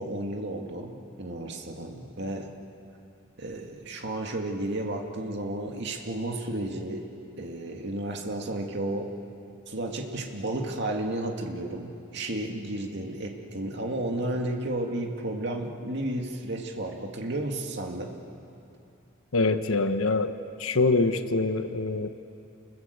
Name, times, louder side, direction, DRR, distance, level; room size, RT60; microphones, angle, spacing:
voice 1, 0.0-2.5 3.4-7.0 7.4-9.1 9.7-18.1, right 1 dB, 55° right, 2 dB, 2.2 m, -32 dB
voice 2, 19.3-20.3 20.6-22.1, left 3 dB, 85° left, 9 dB, 1.1 m, -24 dB
29.0 x 21.0 x 8.1 m, 2.7 s
head